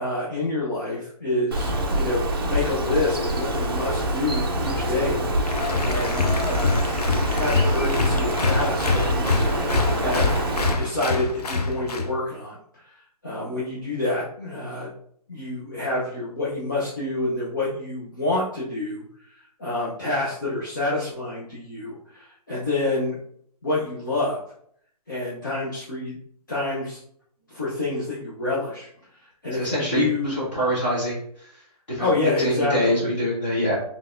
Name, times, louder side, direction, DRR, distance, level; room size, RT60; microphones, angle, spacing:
voice 1, 0.0-5.2 5.8-6.9 7.3-9.5 10.0-10.3 10.7-12.8 13.2-14.9 15.3-19.3 19.6-23.2 23.6-24.4 25.1-26.2 26.5-27.0 27.5-28.9 29.4-30.4 32.0-33.0, left 2 dB, 30° left, -8 dB, 0.8 m, -27 dB
Bird, 1.5-10.7, right 1 dB, 35° right, 0.6 m, -25 dB
Applause, 5.4-12.1, left 3 dB, 70° left, 0.8 m, -25 dB
voice 2, 29.5-31.2 31.9-32.1 32.4-33.8, equal, 15° left, -9 dB, 1.3 m, -24 dB
3.9 x 3.4 x 2.5 m, 0.65 s
hypercardioid pair, 180°, 20 cm